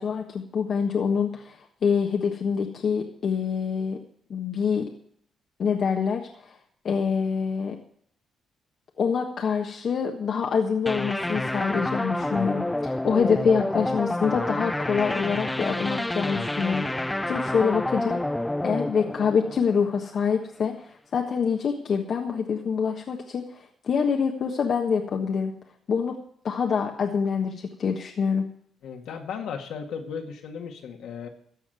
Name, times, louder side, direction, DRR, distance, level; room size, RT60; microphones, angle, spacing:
voice 1, 0.0-4.0 4.3-4.8 5.6-6.6 6.8-7.7 9.0-18.2 18.6-20.7 21.1-23.4 23.8-25.5 25.9-26.1 26.4-28.4, left 6 dB, 60° left, 2 dB, 1.3 m, -25 dB
sound 1, 10.9-20.2, left 1 dB, 10° left, 0.4 m, -29 dB
voice 2, 28.8-31.3, left 6 dB, 80° left, 2 dB, 1.9 m, -35 dB
14.5 x 5.1 x 9.1 m, 0.65 s
supercardioid pair, 65°, 0 cm